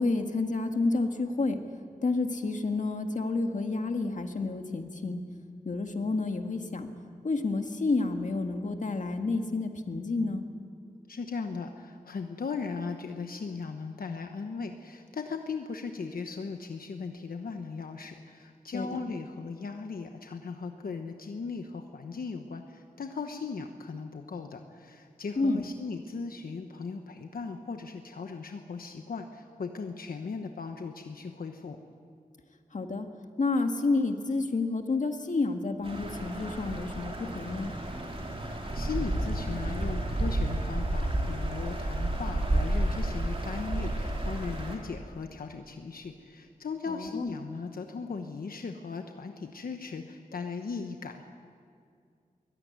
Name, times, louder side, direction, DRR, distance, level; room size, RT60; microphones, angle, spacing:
voice 1, 0.0-1.6 2.0-5.2 5.6-6.9 7.2-10.5 18.7-19.0 25.4-25.6 32.7-33.1 33.4-37.7 46.9-47.3, left 3 dB, 60° left, 5 dB, 1.8 m, -29 dB
voice 2, 11.1-31.8 38.4-51.3, left 4 dB, 85° left, 5 dB, 1.2 m, -38 dB
sound 1, 35.8-44.8, right 1 dB, 40° right, 3.5 m, -31 dB
22.5 x 16.5 x 9.7 m, 2.2 s
wide cardioid pair, 105°, 15 cm